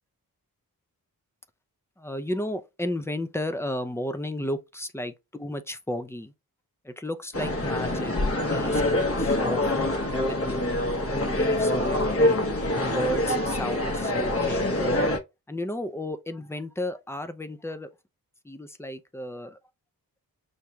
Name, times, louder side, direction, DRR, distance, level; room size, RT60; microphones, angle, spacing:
voice 1, 2.0-6.3 6.8-8.1 8.4-9.6 10.2-12.4 12.8-15.0 15.5-17.9 18.4-19.6, left 1 dB, 5° left, 0.5 m, -33 dB
sound 1, 7.3-15.2, left 1 dB, 40° left, 1.0 m, -25 dB
6.4 x 2.8 x 2.3 m
wide cardioid pair, 110°, 37 cm